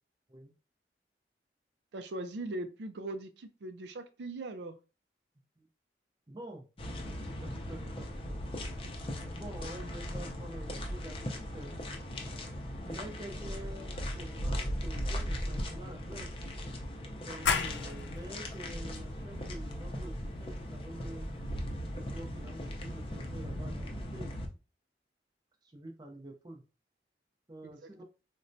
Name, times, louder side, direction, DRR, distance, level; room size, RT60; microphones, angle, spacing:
voice 1, 1.9-4.7 27.6-28.0, right 2 dB, 80° right, 9 dB, 0.4 m, -40 dB
voice 2, 6.3-6.7 7.4-8.7 9.3-11.8 12.8-16.4 17.2-21.3 21.9-24.4 25.6-26.6 27.5-28.0, right 1 dB, 25° right, 3 dB, 0.6 m, -47 dB
sound 1, 6.8-24.5, equal, 30° left, 0.5 m, -38 dB
sound 2, 17.4-22.8, left 6 dB, 85° left, 0.4 m, -38 dB
4.1 x 2.2 x 2.6 m, 0.32 s
head